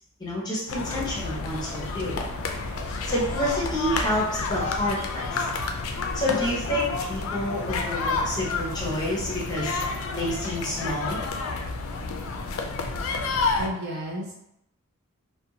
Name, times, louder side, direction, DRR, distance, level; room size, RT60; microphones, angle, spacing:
voice 1, 0.2-2.2 3.0-5.4 6.1-9.8 10.1-11.2, left 1 dB, 20° left, -6 dB, 0.7 m, -29 dB
sound 1, 0.7-13.7, left 3 dB, 70° left, 0.3 m, -30 dB
voice 2, 13.6-14.3, equal, 50° right, -2 dB, 0.6 m, -32 dB
2.5 x 2.1 x 2.7 m, 0.79 s
head